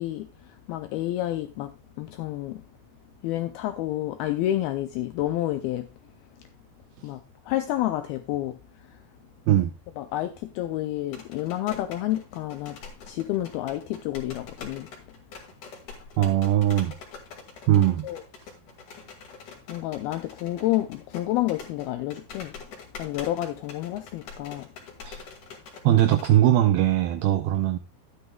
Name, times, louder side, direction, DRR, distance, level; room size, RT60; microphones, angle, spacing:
voice 1, 0.0-2.6 3.2-5.9 7.0-7.2 7.5-9.0 10.0-12.8 13.1-14.9 18.0-18.2 19.7-22.5 23.0-24.7, left 14 dB, 85° left, 2.2 m, -29 dB
sound 1, 11.0-26.4, left 5 dB, 55° left, 3.1 m, -45 dB
voice 2, 16.2-16.9 17.7-18.1 25.0-25.2 25.8-27.8, right 12 dB, 90° right, 2.1 m, -20 dB
12.0 x 9.7 x 2.3 m
omnidirectional pair, 5.0 m